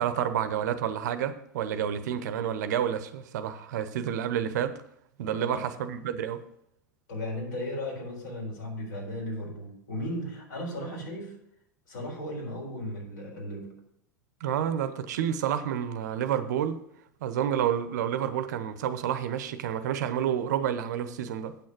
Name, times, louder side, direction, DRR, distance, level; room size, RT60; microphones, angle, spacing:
voice 1, 0.0-4.8 5.2-6.4 14.4-16.8 17.2-21.6, right 9 dB, 65° right, 0.8 m, -29 dB
voice 2, 7.1-11.4 11.9-13.7, left 1 dB, 75° left, 4.0 m, -36 dB
8.5 x 6.3 x 6.0 m
figure-of-eight pair, 90°, 10 cm